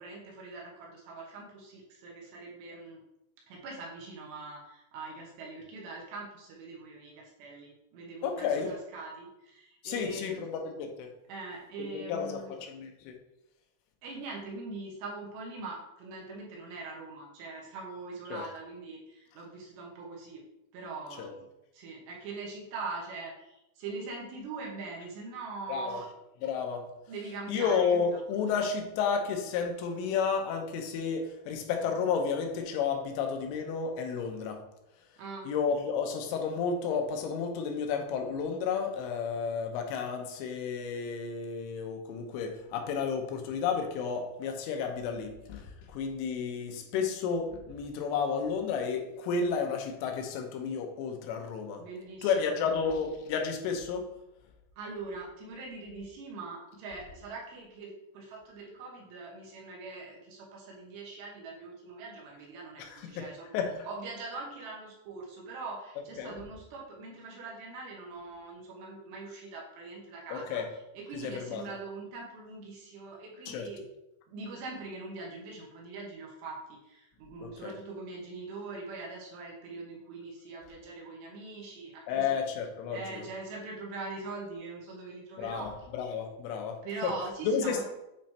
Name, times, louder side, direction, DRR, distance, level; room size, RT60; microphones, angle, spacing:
voice 1, 0.0-3.0 3.5-10.4 11.3-12.6 14.0-20.4 20.7-21.4 21.7-26.1 27.1-28.2 35.2-35.5 51.8-52.9 54.8-63.6 63.8-73.8 74.3-82.4 82.9-85.7 86.8-87.9, right 3 dB, 70° right, -2 dB, 3.0 m, -42 dB
voice 2, 8.2-8.7 9.8-11.1 11.8-13.1 18.3-18.4 21.2-21.3 25.7-26.0 26.4-26.9 27.5-34.6 35.5-51.8 52.2-54.1 62.8-63.2 63.5-63.9 66.2-66.3 70.3-70.7 71.1-71.6 73.5-73.7 77.4-77.7 82.1-83.3 85.4-87.1 87.4-87.9, left 6 dB, 85° left, 3 dB, 3.3 m, -32 dB
8.8 x 3.1 x 4.3 m, 0.87 s
omnidirectional pair, 5.5 m